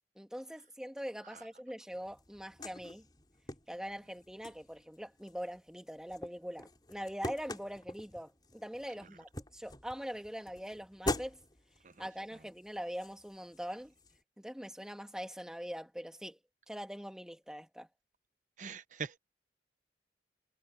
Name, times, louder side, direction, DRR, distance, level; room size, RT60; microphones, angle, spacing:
voice 1, 0.1-3.0 3.7-11.4 12.0-13.9 14.4-16.4 16.7-17.9, equal, 5° right, 1.6 m, -43 dB
sound 1, 1.9-14.2, left 1 dB, 25° left, 5.1 m, -45 dB
voice 2, 18.6-19.2, right 6 dB, 45° right, 0.8 m, -41 dB
head